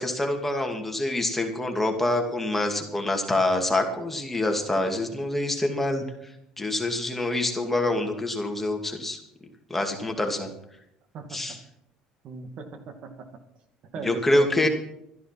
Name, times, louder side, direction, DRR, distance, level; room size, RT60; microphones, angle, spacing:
voice 1, 0.0-6.0 6.6-9.2 9.7-10.5 11.3-11.6 14.0-14.7, left 1 dB, 10° left, 3 dB, 2.5 m, -26 dB
voice 2, 12.2-13.3 13.9-14.7, right 4 dB, 55° right, 7 dB, 2.3 m, -38 dB
13.0 x 11.0 x 5.9 m, 0.77 s
supercardioid pair, 95°, 2 cm